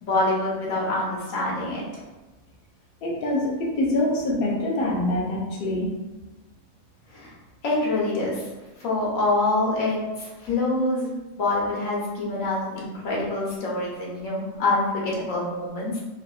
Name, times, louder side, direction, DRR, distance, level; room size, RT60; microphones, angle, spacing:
voice 1, 0.0-2.0 7.1-7.3 7.6-8.5 8.8-16.0, left 2 dB, 85° left, -4 dB, 1.2 m, -26 dB
voice 2, 3.0-5.9, left 1 dB, 55° left, -2 dB, 0.7 m, -25 dB
3.3 x 2.5 x 2.3 m, 1.1 s
omnidirectional pair, 1.4 m